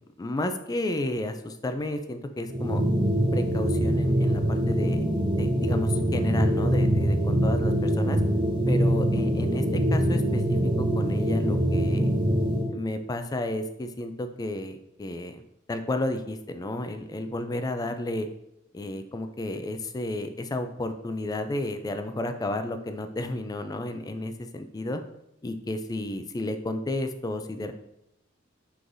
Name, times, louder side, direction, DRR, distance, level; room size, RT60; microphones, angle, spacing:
voice 1, 0.2-2.8 3.3-5.0 5.4-8.2 8.7-12.1 12.7-15.4 15.7-18.3 18.7-25.0 25.4-27.7, left 1 dB, 20° left, 8 dB, 0.3 m, -32 dB
sound 1, 2.5-12.7, right 1 dB, 25° right, 0.6 m, -24 dB
5.9 x 3.3 x 2.6 m, 0.82 s
head